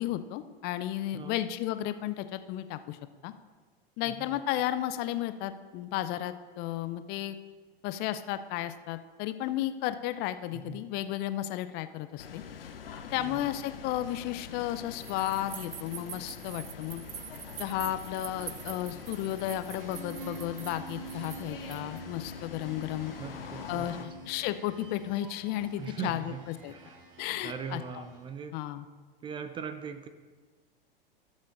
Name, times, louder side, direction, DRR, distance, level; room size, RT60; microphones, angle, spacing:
voice 1, 0.0-3.3 4.0-7.4 7.8-12.4 13.1-17.0 17.6-23.1 23.7-24.0 24.3-26.7 27.2-28.0 28.5-28.8, left 13 dB, 35° left, 12 dB, 0.5 m, -33 dB
voice 2, 4.0-4.4 10.5-10.8 13.2-13.5 23.2-24.1 25.8-27.0 27.4-28.5 29.2-30.1, right 7 dB, 20° right, 10 dB, 0.4 m, -40 dB
sound 1, 12.2-24.1, left 7 dB, 75° left, 0.8 m, -45 dB
sound 2, 15.0-22.0, right 10 dB, 75° right, 0.5 m, -45 dB
sound 3, 17.6-28.4, right 2 dB, 40° right, 1.8 m, -48 dB
19.5 x 7.3 x 2.5 m, 1.4 s
figure-of-eight pair, 90°, 29 cm